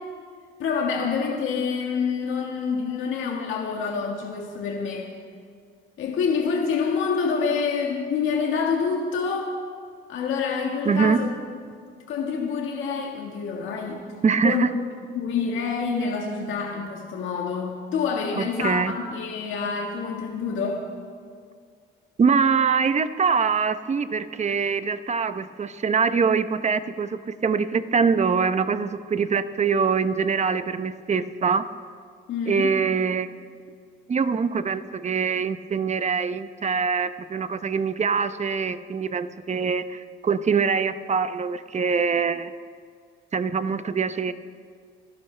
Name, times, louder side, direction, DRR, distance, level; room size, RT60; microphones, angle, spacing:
voice 1, 0.6-5.1 6.0-9.5 10.1-11.3 11.8-14.0 14.4-14.7 15.1-20.8 32.3-32.7, left 5 dB, 80° left, 0 dB, 1.7 m, -27 dB
voice 2, 10.8-11.2 14.2-14.7 18.3-18.9 22.2-31.7 32.5-33.3 34.1-42.5 43.3-44.3, right 5 dB, 35° right, 12 dB, 0.8 m, -24 dB
28.5 x 12.0 x 3.3 m, 2.1 s
cardioid pair, 90°, 20 cm